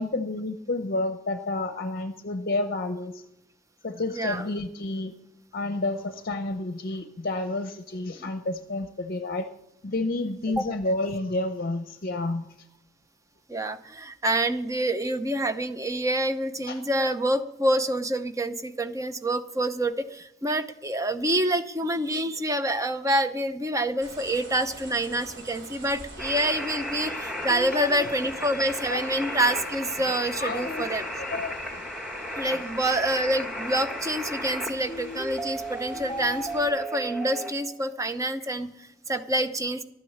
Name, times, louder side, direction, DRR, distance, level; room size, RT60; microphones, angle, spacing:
voice 1, 0.0-3.2 3.8-5.1 5.5-9.5 9.8-12.5 16.7-16.8 27.5-28.1 28.9-29.1 30.3-30.9 31.3-31.5 32.4-32.6, left 2 dB, 50° left, 8 dB, 0.7 m, -30 dB
voice 2, 4.1-4.5 10.6-10.7 13.5-31.0 32.4-39.8, right 1 dB, 15° right, 9 dB, 0.7 m, -27 dB
sound 1, 24.0-36.7, right 1 dB, 60° right, 3.4 m, -46 dB
sound 2, 26.2-37.5, equal, ahead, 1.6 m, -35 dB
12.5 x 9.7 x 7.2 m, 0.85 s
head